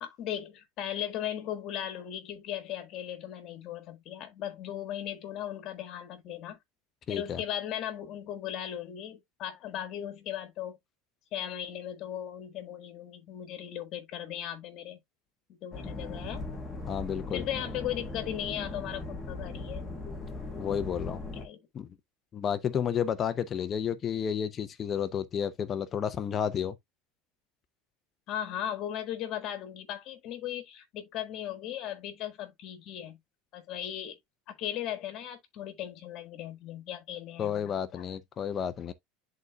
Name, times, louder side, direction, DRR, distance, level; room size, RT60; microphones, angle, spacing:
voice 1, 0.0-6.6 7.1-10.8 11.3-15.0 15.5-16.5 17.3-19.9 21.3-21.6 28.3-33.2 33.5-34.2 34.5-38.0, left 11 dB, 45° left, 1.6 m, -37 dB
voice 2, 7.1-7.4 16.9-17.4 20.6-21.2 21.7-21.9 22.3-26.7 37.4-38.9, left 8 dB, 30° left, 0.6 m, -31 dB
sound 1, 15.7-21.4, left 2 dB, 10° left, 1.4 m, -39 dB
11.0 x 4.0 x 2.3 m
supercardioid pair, 140°, 0 cm